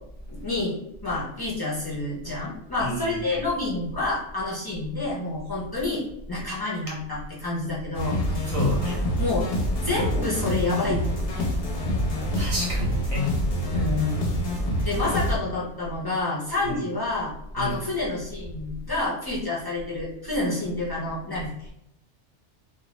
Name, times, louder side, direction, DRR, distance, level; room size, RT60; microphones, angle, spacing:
voice 1, 0.3-0.8 1.0-6.0 6.3-8.4 9.2-9.5 9.8-11.5 13.7-14.3 14.8-21.7, left 2 dB, 30° left, -7 dB, 0.5 m, -28 dB
voice 2, 2.8-3.4 8.5-9.1 12.4-13.7 14.8-14.9 16.6-16.8 17.6-17.8, left 1 dB, 35° right, -4 dB, 0.6 m, -30 dB
sound 1, 7.9-15.4, equal, 65° left, 0.8 m, -26 dB
2.3 x 2.3 x 3.0 m, 0.80 s
omnidirectional pair, 1.2 m